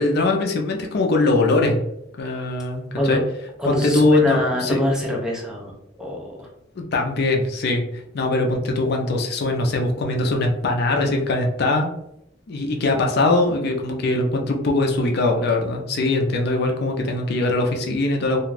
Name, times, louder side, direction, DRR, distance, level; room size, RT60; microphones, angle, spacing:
voice 1, 0.0-1.8 2.2-3.2 3.6-4.9 6.8-11.9 12.5-18.4, left 2 dB, 60° left, 2 dB, 0.5 m, -21 dB
voice 2, 3.6-6.5, left 1 dB, 5° right, -2 dB, 0.6 m, -25 dB
2.4 x 2.3 x 3.2 m, 0.80 s
head